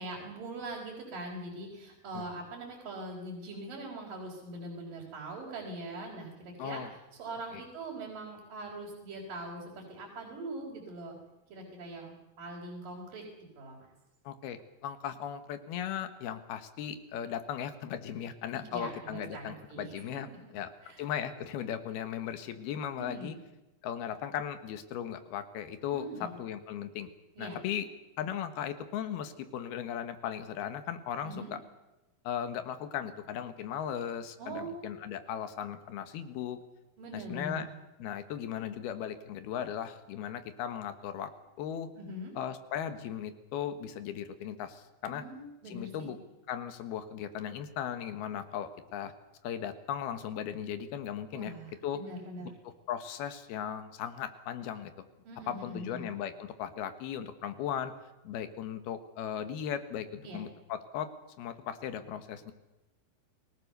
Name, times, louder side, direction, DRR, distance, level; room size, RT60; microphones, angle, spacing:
voice 1, 0.0-6.8 7.2-11.2 11.5-13.2 13.6-13.9 18.7-20.5 20.8-21.1 23.0-23.4 25.9-26.4 27.4-27.6 31.2-31.5 34.4-34.9 37.0-37.6 42.0-42.3 45.1-46.1 51.3-52.5 55.2-56.1 60.2-60.4, right 2 dB, 65° right, -3 dB, 5.9 m, -42 dB
voice 2, 6.6-6.9 7.5-7.6 14.3-20.3 20.5-20.7 21.0-23.4 23.8-27.1 27.4-27.9 28.2-31.6 32.3-36.6 37.1-37.7 38.0-41.3 41.6-41.9 42.4-45.2 45.7-46.2 46.5-49.1 49.4-51.5 51.8-52.0 52.4-52.5 52.9-55.1 55.5-57.9 58.3-61.1 61.4-62.5, left 9 dB, 90° left, 9 dB, 3.5 m, -37 dB
28.0 x 19.0 x 6.7 m, 1.0 s
omnidirectional pair, 4.3 m